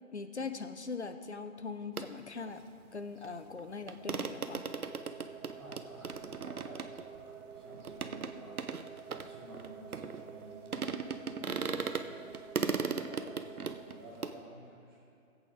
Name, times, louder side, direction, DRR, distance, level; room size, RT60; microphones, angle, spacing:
voice 1, 0.1-2.6 2.9-4.7, left 4 dB, 50° left, 9 dB, 0.7 m, -41 dB
sound 1, 2.0-2.1 3.2-3.3 3.6-3.7 3.9-10.4 10.7-12.1 12.3-14.3, right 5 dB, 75° right, 0.7 m, -37 dB
sound 2, 4.0-13.8, right 6 dB, 60° right, 1.4 m, -50 dB
voice 2, 5.5-8.6 9.1-12.3 13.0-15.0, right 1 dB, 15° right, -9 dB, 2.0 m, -53 dB
16.5 x 8.2 x 3.8 m, 2.7 s
figure-of-eight pair, 175°, 44 cm